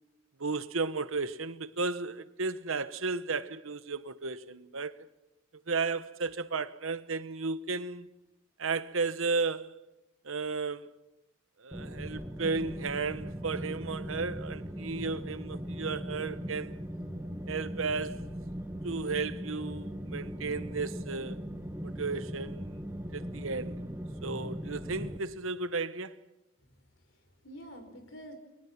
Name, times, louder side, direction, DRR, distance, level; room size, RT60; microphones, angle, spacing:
voice 1, 0.4-4.9 5.7-8.1 8.6-9.8 10.2-10.9 11.6-16.7 17.5-18.3 18.8-21.4 21.8-22.8 23.1-23.8 24.2-26.2, right 4 dB, 85° right, 1.1 m, -34 dB
sound 1, 11.7-25.2, equal, 10° right, 1.4 m, -39 dB
voice 2, 26.6-28.3, equal, 65° left, 4.7 m, -49 dB
30.0 x 23.0 x 5.9 m
head